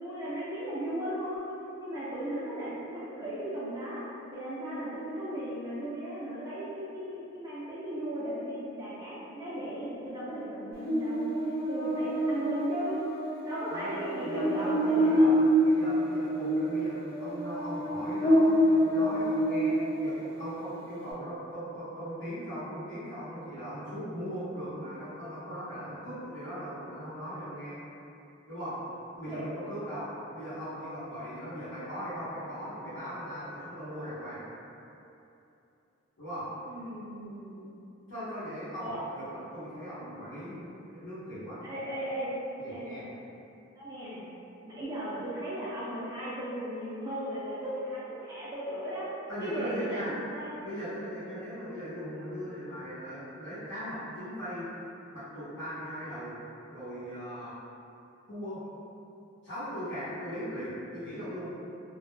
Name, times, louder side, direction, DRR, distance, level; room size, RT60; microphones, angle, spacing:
voice 1, 0.0-4.0 4.3-11.3 11.7-13.0 13.5-15.3 29.3-29.4 36.7-37.7 38.8-39.0 41.6-42.4 42.7-43.0 43.8-44.3 44.7-49.1 49.4-50.6, equal, 20° right, -10 dB, 0.3 m, -36 dB
Buzz, 10.8-20.3, equal, 50° left, 0.5 m, -27 dB
voice 2, 13.7-15.3 15.6-27.8 28.5-28.7 29.1-30.1 30.3-34.4 36.2-36.5 38.1-41.6 42.6-43.0 49.3-50.1 50.6-54.7 55.1-56.3 56.7-57.5 58.3-58.6 59.4-61.5, equal, 80° left, -15 dB, 0.8 m, -39 dB
2.1 x 2.0 x 3.0 m, 2.8 s
head